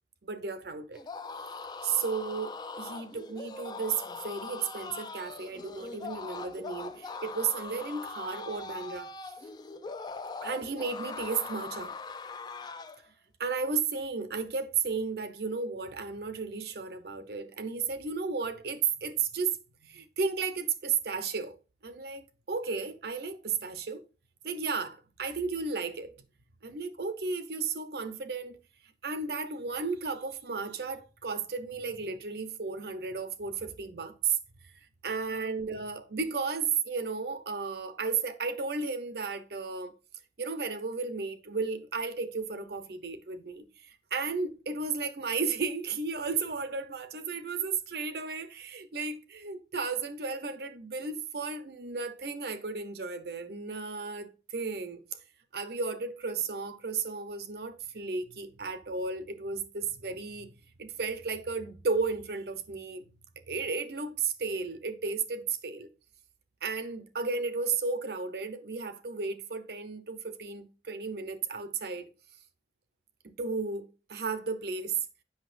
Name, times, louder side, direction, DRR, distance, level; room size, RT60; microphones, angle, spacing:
voice 1, 0.2-1.0 1.8-9.1 10.4-11.9 13.4-19.6 19.9-21.6 21.8-24.0 24.4-26.1 26.6-28.6 29.0-34.4 35.0-39.9 40.4-55.0 55.5-60.5 60.8-63.0 63.5-65.9 66.6-72.1 73.2-75.0, right 5 dB, 60° right, 0.7 m, -34 dB
sound 1, 0.9-13.0, left 4 dB, 25° left, 0.4 m, -41 dB
8.0 x 5.8 x 2.5 m
head